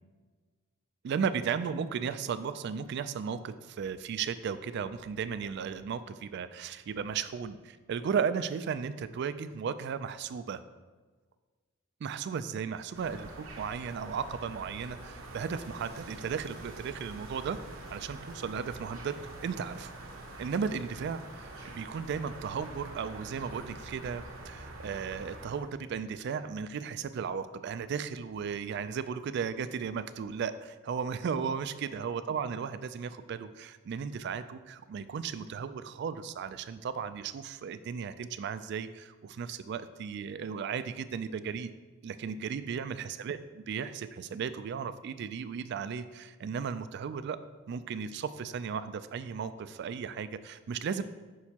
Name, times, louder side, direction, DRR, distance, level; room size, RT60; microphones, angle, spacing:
voice 1, 1.0-10.6 12.0-17.6 17.9-19.9 20.4-41.7 42.0-47.4 47.7-51.0, right 6 dB, 55° right, 13 dB, 0.3 m, -35 dB
sound 1, 12.9-25.7, right 2 dB, 80° right, 0.9 m, -46 dB
6.2 x 5.7 x 2.9 m, 1.4 s
head